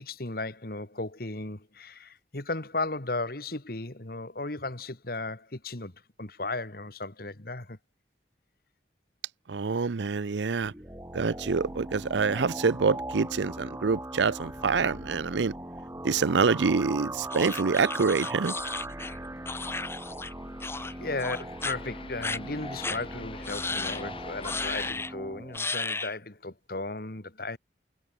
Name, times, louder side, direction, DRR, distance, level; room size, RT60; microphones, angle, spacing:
voice 1, 0.0-5.9 6.2-7.8 20.7-27.6, left 2 dB, 55° left, 2.0 m, -35 dB
voice 2, 9.5-10.7 11.1-15.5 16.0-18.5, right 4 dB, 85° right, 0.6 m, -26 dB
sound 1, 10.6-25.6, right 1 dB, 15° right, 4.2 m, -39 dB
sound 2, 17.3-20.3 20.6-20.9 21.2-21.7 22.2-22.4 22.8-23.0 23.4-24.0 24.4-25.1 25.5-26.1, left 3 dB, 15° left, 1.3 m, -34 dB
sound 3, 18.4-24.9, left 3 dB, 30° left, 5.3 m, -46 dB
head